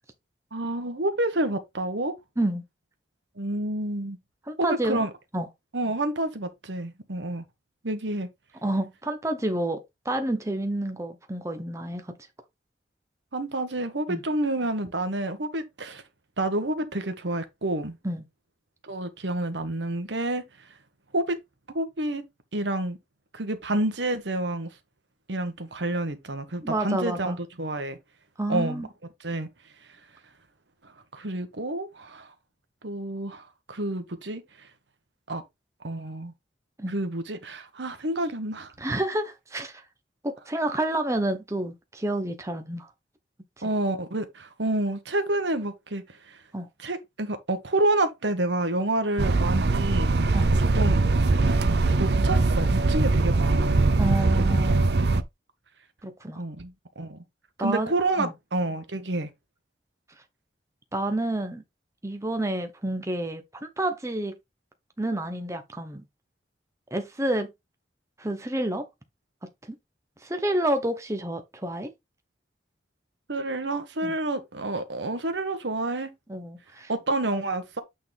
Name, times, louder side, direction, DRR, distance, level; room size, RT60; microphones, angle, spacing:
voice 1, 0.5-2.1 3.4-4.2 4.6-5.1 5.7-7.4 7.8-8.3 13.3-16.0 16.4-18.0 18.8-20.7 21.1-21.4 21.7-22.2 22.5-23.0 23.3-24.7 25.3-28.0 28.5-28.9 29.2-29.5 30.8-32.3 32.8-34.7 35.3-35.4 35.8-36.3 36.9-38.7 43.6-46.4 46.8-51.0 52.0-53.8 54.3-54.6 56.3-57.2 57.6-59.3 73.3-76.1 76.9-77.8, right 2 dB, 80° right, 1.4 m, -29 dB
voice 2, 4.5-5.1 5.3-5.5 8.6-12.1 14.1-14.2 18.0-18.2 26.6-27.4 28.4-28.9 36.8-36.9 38.8-39.8 40.2-42.9 46.5-46.7 50.3-50.5 54.0-54.8 56.0-56.4 57.6-57.9 58.2-58.3 60.9-61.6 62.0-64.4 65.0-66.0 66.9-67.5 68.2-68.9 70.2-71.9 74.0-74.2 76.3-76.9, right 1 dB, 15° right, 1.0 m, -29 dB
sound 1, 49.2-55.2, right 3 dB, 65° right, 0.6 m, -21 dB
8.6 x 4.0 x 3.5 m
head